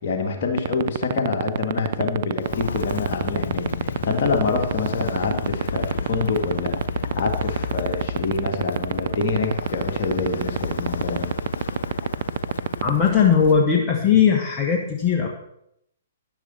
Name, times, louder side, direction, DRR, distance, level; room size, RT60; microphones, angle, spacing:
voice 1, 0.0-11.3, left 5 dB, 50° left, 3 dB, 2.3 m, -26 dB
sound 1, 0.6-12.9, right 11 dB, 50° right, 0.4 m, -22 dB
Walk footsteps, 2.4-13.7, left 6 dB, 65° left, 0.6 m, -32 dB
voice 2, 12.8-15.3, left 7 dB, 25° left, 0 dB, 1.5 m, -18 dB
13.5 x 10.5 x 4.3 m, 0.75 s
figure-of-eight pair, 120°, 0 cm